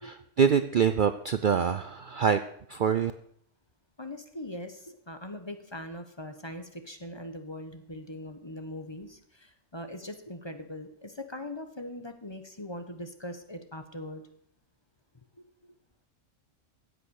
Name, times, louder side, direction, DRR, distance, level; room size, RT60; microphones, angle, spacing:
voice 1, 0.0-2.4 2.7-3.1, right 7 dB, 50° right, 11 dB, 0.6 m, -25 dB
voice 2, 4.0-14.2 15.4-15.5, left 1 dB, 20° left, 8 dB, 1.2 m, -41 dB
15.5 x 8.3 x 6.5 m, 0.66 s
omnidirectional pair, 1.3 m